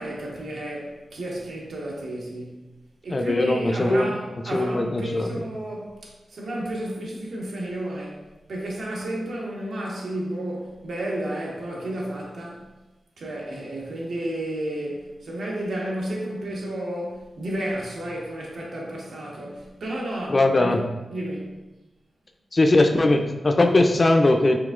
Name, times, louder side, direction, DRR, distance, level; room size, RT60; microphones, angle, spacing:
voice 1, 0.0-2.6 3.0-8.2 8.5-12.7 13.2-20.7 21.1-21.6, right 1 dB, 80° right, -3 dB, 1.0 m, -32 dB
voice 2, 3.1-4.1 4.5-5.3 20.3-20.8 22.5-24.6, left 2 dB, 35° left, 5 dB, 0.3 m, -20 dB
5.0 x 3.6 x 2.3 m, 1.1 s
wide cardioid pair, 110°, 0 cm